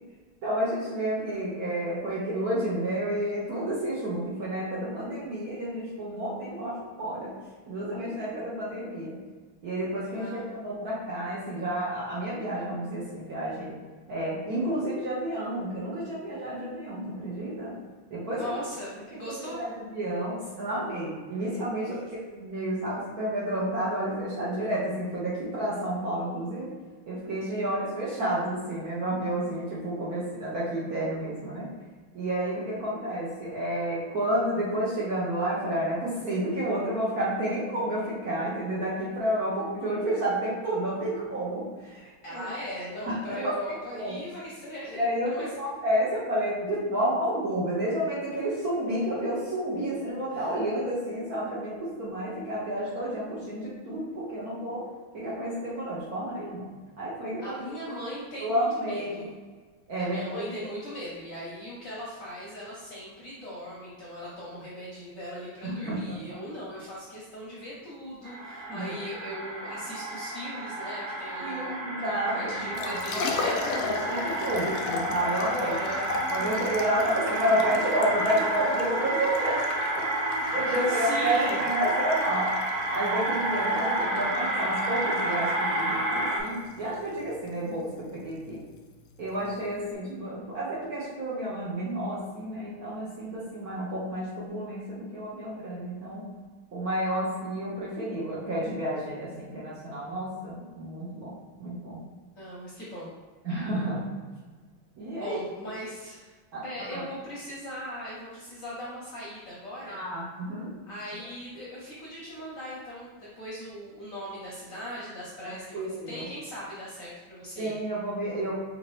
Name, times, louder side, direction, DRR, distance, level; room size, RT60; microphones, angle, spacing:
voice 1, 0.4-7.3 7.7-9.2 9.6-13.8 14.1-17.8 18.1-18.5 19.3-22.0 22.3-26.7 27.1-31.7 32.1-42.5 43.1-43.6 43.9-44.2 44.9-57.6 58.4-59.3 59.9-60.7 65.6-66.2 68.7-69.0 71.4-75.8 76.3-79.6 79.9-80.1 80.3-82.6 82.9-88.6 89.2-96.3 96.7-102.0 103.4-104.1 105.0-105.4 106.5-107.0 109.8-110.2 110.5-110.7 115.4-116.3 117.6-118.5, right 1 dB, 55° right, -7 dB, 1.1 m, -30 dB
voice 2, 10.0-10.5 18.4-19.6 21.8-22.0 27.5-27.7 42.2-45.5 50.3-50.5 57.4-59.3 60.0-73.8 75.3-76.1 76.4-76.8 80.6-81.6 102.4-103.1 105.2-106.3 106.6-110.0 110.9-117.7, equal, 55° left, -7 dB, 1.0 m, -39 dB
sound 1, 68.2-86.4, right 1 dB, 80° right, 0.6 m, -30 dB
Liquid, 72.6-89.9, left 4 dB, 75° left, 1.2 m, -37 dB
5.2 x 2.8 x 3.1 m, 1.4 s
omnidirectional pair, 2.3 m